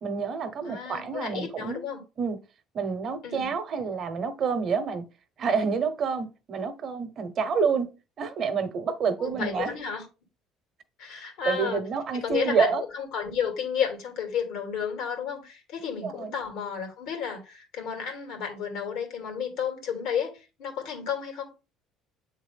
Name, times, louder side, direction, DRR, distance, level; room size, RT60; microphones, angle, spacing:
voice 1, 0.0-1.8 2.2-2.4 2.7-5.1 5.4-9.7 11.5-12.8 16.0-16.4, right 5 dB, 45° right, 1.0 m, -28 dB
voice 2, 0.6-2.0 3.2-3.5 9.2-10.0 11.0-11.8 12.1-21.5, left 7 dB, 75° left, 2.3 m, -32 dB
7.8 x 3.7 x 3.5 m
cardioid pair, 110°, 0 cm